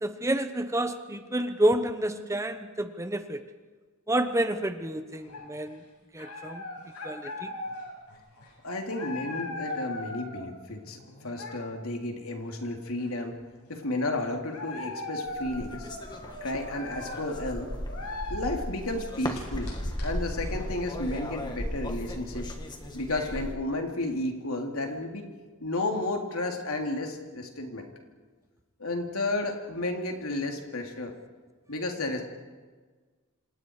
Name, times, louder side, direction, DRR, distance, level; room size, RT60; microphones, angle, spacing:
voice 1, 0.0-3.4 4.1-5.8 6.1-6.6 7.0-7.5, right 1 dB, 15° right, 9 dB, 1.0 m, -29 dB
sound 1, 5.1-5.8 6.2-10.5 10.9-11.8 12.6-12.7 13.0-13.7 14.2-18.6 19.1-21.4, left 2 dB, 90° left, 7.9 m, -40 dB
voice 2, 8.6-13.4 13.7-15.9 16.4-17.7 18.3-19.7 20.0-22.5 22.9-25.2 25.6-27.9 28.8-31.1 31.7-32.2, left 2 dB, 70° left, 2 dB, 3.6 m, -32 dB
sound 2, 15.3-23.5, equal, 20° left, 2.3 m, -36 dB
29.0 x 26.5 x 4.9 m, 1.4 s
head